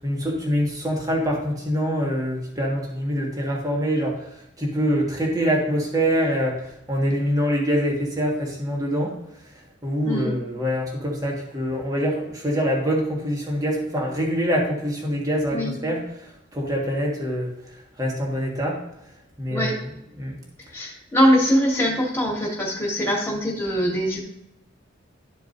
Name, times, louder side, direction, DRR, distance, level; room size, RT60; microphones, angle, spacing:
voice 1, 0.0-4.2 4.6-6.6 6.9-9.1 9.8-16.0 16.5-17.5 18.0-18.8 19.4-19.7 20.2-20.3, equal, 20° right, -2 dB, 1.6 m, -24 dB
voice 2, 10.0-10.4 15.5-15.7 19.5-19.8 20.7-24.2, equal, 15° left, -2 dB, 2.0 m, -22 dB
12.5 x 4.6 x 2.6 m, 0.81 s
head